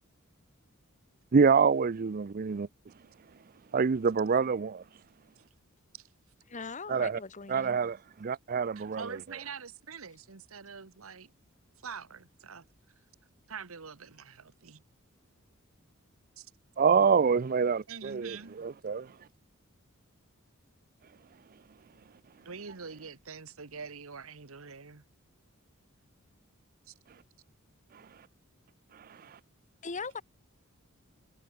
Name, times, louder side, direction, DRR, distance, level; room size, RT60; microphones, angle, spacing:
voice 1, 1.3-2.7 3.7-4.8 6.9-7.2 7.5-9.1 16.8-19.1 27.9-28.1 28.9-29.4, right 5 dB, 40° right, 0.4 m, -26 dB
voice 2, 6.5-7.8 29.8-30.2, left 4 dB, 35° left, 1.3 m, -40 dB
voice 3, 8.8-11.3 11.8-12.6 13.5-14.8 16.4-16.5 17.9-18.6 22.4-25.0 26.9-27.0, right 6 dB, 75° right, 1.2 m, -45 dB
head